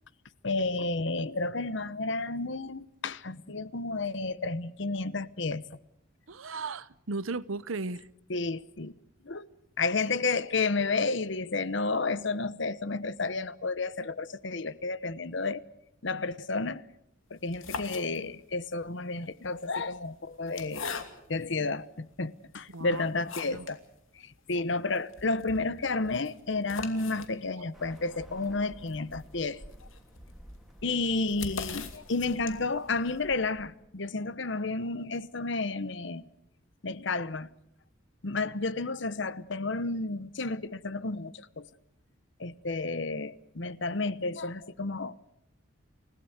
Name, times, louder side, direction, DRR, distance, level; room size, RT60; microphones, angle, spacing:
voice 1, 0.4-5.6 8.3-8.9 9.2-9.5 9.8-15.6 16.0-16.8 17.3-20.9 21.3-23.8 24.1-29.6 30.8-36.2 36.8-37.5 38.2-41.7 42.4-45.1, left 3 dB, 60° left, 1.0 m, -31 dB
voice 2, 6.3-8.1 22.7-23.1 23.4-23.7, right 3 dB, 85° right, 0.9 m, -36 dB
sound 1, 17.4-18.6 19.4-21.5 22.1-22.2 22.7-23.8 24.1-24.2 24.5-24.6 25.0-32.8, left 5 dB, 80° left, 2.7 m, -42 dB
Bird, 27.7-33.9, equal, ahead, 3.1 m, -52 dB
29.5 x 17.0 x 8.0 m
head